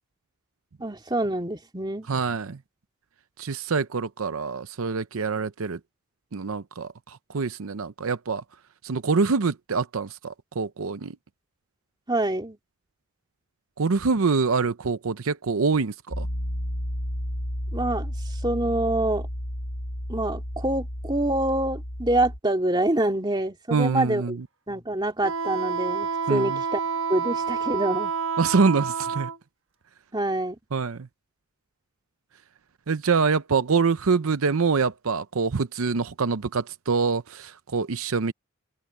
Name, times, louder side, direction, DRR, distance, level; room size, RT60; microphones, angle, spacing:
voice 1, 0.8-2.1 12.1-12.6 17.7-19.3 20.1-24.4 24.7-26.8 27.1-28.1 30.1-30.6, right 1 dB, 20° right, 2.6 m, -26 dB
voice 2, 2.1-2.6 3.4-5.8 6.3-8.4 8.8-11.2 13.8-16.3 23.7-24.5 26.3-26.6 28.4-29.3 30.7-31.1 32.9-38.3, right 4 dB, 80° right, 0.7 m, -25 dB
Piano, 16.1-22.4, equal, 75° left, 7.5 m, -32 dB
Wind instrument woodwind instrument, 25.2-29.4, right 6 dB, 60° right, 1.4 m, -28 dB
open air
head